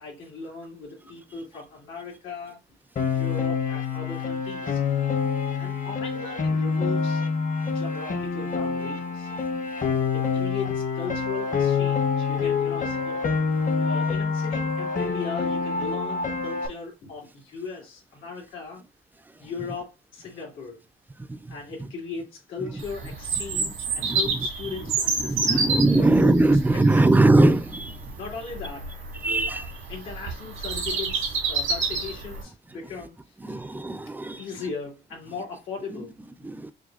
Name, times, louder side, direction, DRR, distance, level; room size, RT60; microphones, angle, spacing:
voice 1, 0.0-2.6 3.0-4.8 5.6-7.2 7.6-9.6 10.1-13.2 13.8-18.8 19.4-20.8 21.5-27.1 28.1-28.9 29.4-29.6 29.9-33.1 33.5-33.6 34.4-36.1, left 5 dB, 85° left, 2.2 m, -38 dB
Piano, 3.0-16.7, left 5 dB, 40° left, 0.9 m, -26 dB
Bird vocalization bird call bird song, 22.8-32.4, right 4 dB, 90° right, 1.6 m, -29 dB
voice 2, 25.2-28.0 29.2-29.7 33.4-34.4 36.4-36.7, right 2 dB, 10° right, 0.4 m, -20 dB
6.2 x 2.3 x 2.4 m
cardioid pair, 90°, 20 cm